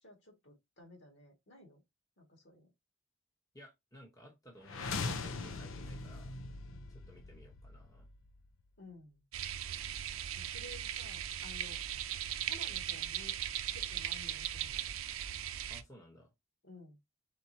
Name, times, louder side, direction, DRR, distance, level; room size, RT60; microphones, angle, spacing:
voice 1, 0.0-1.8 2.2-2.7 8.8-9.2 10.4-11.8 12.5-13.4 13.7-14.9 16.6-17.0, left 2 dB, 55° left, 2.3 m, -54 dB
voice 2, 3.5-6.3 6.9-8.1 15.7-16.3, equal, 15° left, 1.1 m, -57 dB
sound 1, 4.6-8.6, left 4 dB, 70° left, 0.6 m, -41 dB
sound 2, 9.3-15.8, right 11 dB, 85° right, 0.5 m, -38 dB
4.4 x 4.2 x 2.8 m
head